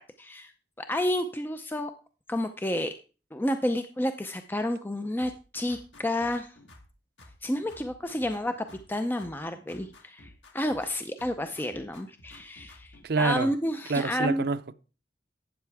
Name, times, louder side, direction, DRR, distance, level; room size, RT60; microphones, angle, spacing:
voice 1, 0.2-0.5 0.8-1.9 2.3-2.9 3.3-6.5 7.4-14.4, left 1 dB, 10° left, 0.5 m, -30 dB
sound 1, 5.2-6.9 7.2-8.9 9.2-10.9 11.2-13.1, left 1 dB, 80° left, 2.0 m, -53 dB
voice 2, 13.0-13.5 13.9-14.7, right 4 dB, 60° right, 0.6 m, -27 dB
12.0 x 8.7 x 3.4 m
head